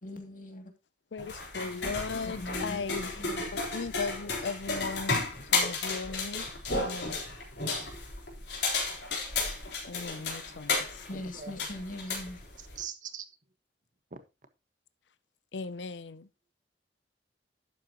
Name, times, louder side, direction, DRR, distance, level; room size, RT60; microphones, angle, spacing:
voice 1, 0.0-0.7 2.2-2.8 3.2-3.4 11.1-12.4, left 1 dB, 50° left, 2.6 m, -41 dB
voice 2, 1.1-3.3 3.7-5.2 5.5-6.5 6.8-7.2 9.9-11.7 15.5-16.3, left 4 dB, 90° left, 0.6 m, -38 dB
sound 1, 1.2-12.8, left 3 dB, 75° left, 4.0 m, -33 dB
voice 3, 11.1-11.5 12.3-13.3 14.1-14.2, right 8 dB, 50° right, 1.4 m, -43 dB
12.0 x 8.4 x 2.9 m
head